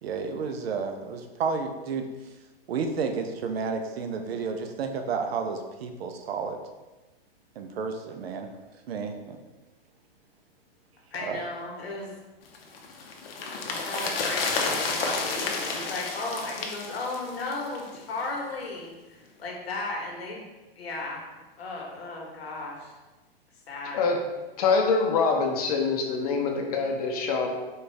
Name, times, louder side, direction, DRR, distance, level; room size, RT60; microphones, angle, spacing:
voice 1, 0.0-2.0 2.7-6.6 7.6-8.5 8.9-9.4 11.2-11.4, right 5 dB, 80° right, 6 dB, 0.6 m, -31 dB
voice 2, 11.1-12.1 13.7-20.4 20.7-21.2 21.6-22.9 23.7-24.0, left 2 dB, 90° left, -1 dB, 1.3 m, -35 dB
sound 1, 12.5-18.0 18.2-18.3, left 4 dB, 75° left, 0.7 m, -31 dB
voice 3, 24.6-27.5, left 4 dB, 40° left, 1 dB, 0.6 m, -24 dB
4.3 x 2.4 x 3.2 m, 1.2 s
hypercardioid pair, 160°, 30 cm